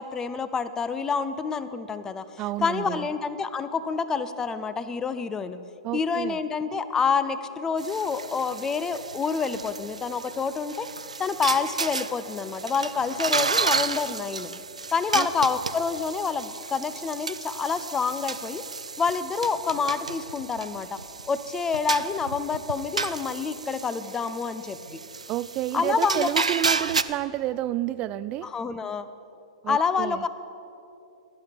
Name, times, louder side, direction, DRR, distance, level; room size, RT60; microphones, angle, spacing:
voice 1, 0.0-2.2 2.6-5.6 5.9-10.9 11.2-14.5 14.9-18.6 19.0-21.0 21.3-25.0 25.7-26.3 28.4-29.1 29.7-30.3, left 5 dB, 15° left, 13 dB, 0.6 m, -27 dB
voice 2, 2.4-3.1 5.8-6.4 15.1-15.3 25.3-28.5 29.6-30.2, right 14 dB, 30° right, 17 dB, 0.4 m, -30 dB
sound 1, 7.8-27.0, right 4 dB, 85° right, 0.5 m, -32 dB
17.0 x 11.0 x 5.2 m, 2.9 s
figure-of-eight pair, 115°, 4 cm